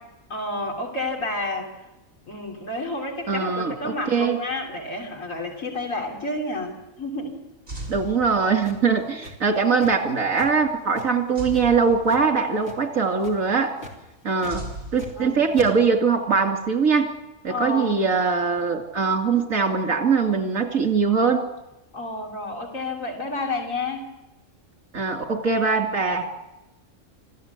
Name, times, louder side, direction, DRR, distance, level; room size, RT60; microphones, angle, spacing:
voice 1, 0.3-1.7 2.3-7.4 7.7-7.9 15.2-15.4 17.5-18.0 21.9-24.1, left 2 dB, 75° left, 1 dB, 3.4 m, -30 dB
voice 2, 3.3-4.4 7.9-13.8 14.2-14.6 14.9-17.1 17.4-21.5 24.9-26.3, right 5 dB, 80° right, 4 dB, 2.9 m, -22 dB
sound 1, 7.7-8.9 11.3-12.6 14.5-15.8, right 2 dB, 50° right, 7.3 m, -38 dB
sound 2, 8.6-10.1 10.4-10.5 10.9-12.2 12.6-12.9 13.2-13.5 13.8-13.9 14.4-15.3 15.5-15.7, left 2 dB, 55° left, 3.4 m, -41 dB
26.0 x 15.0 x 8.2 m, 0.98 s
omnidirectional pair, 1.4 m